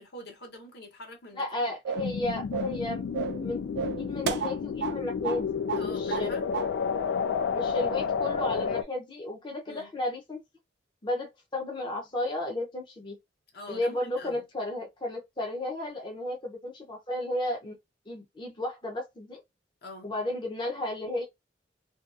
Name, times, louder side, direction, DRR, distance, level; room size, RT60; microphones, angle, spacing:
voice 1, 0.0-1.7 5.8-6.6 9.7-9.9 13.5-14.4 19.8-20.1, left 1 dB, 60° left, 0.8 m, -45 dB
voice 2, 1.3-6.3 7.5-10.4 11.0-13.2 13.7-17.8 18.1-19.4 20.0-21.2, left 1 dB, 25° left, 0.5 m, -33 dB
sound 1, 1.8-2.2 2.5-2.8 3.1-3.4 3.8-5.0 5.2-5.4 5.7-6.3 6.5-6.7, right 6 dB, 70° right, 0.3 m, -32 dB
sound 2, 2.0-8.8, left 6 dB, 80° left, 0.3 m, -31 dB
2.7 x 2.3 x 2.3 m
head